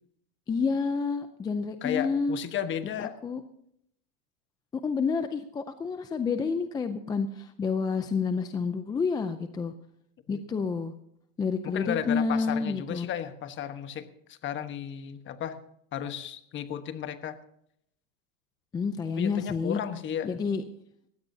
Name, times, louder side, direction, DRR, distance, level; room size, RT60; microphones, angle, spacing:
voice 1, 0.5-2.4 3.2-3.4 4.8-9.7 10.3-10.9 11.4-13.1 18.7-19.8 20.2-20.6, left 5 dB, 10° left, 9 dB, 0.4 m, -29 dB
voice 2, 1.8-3.2 10.3-10.4 11.6-15.6 15.9-17.4 19.1-20.3, left 9 dB, 30° left, 10 dB, 1.2 m, -34 dB
20.0 x 16.0 x 2.7 m, 0.71 s
supercardioid pair, 135°, 41 cm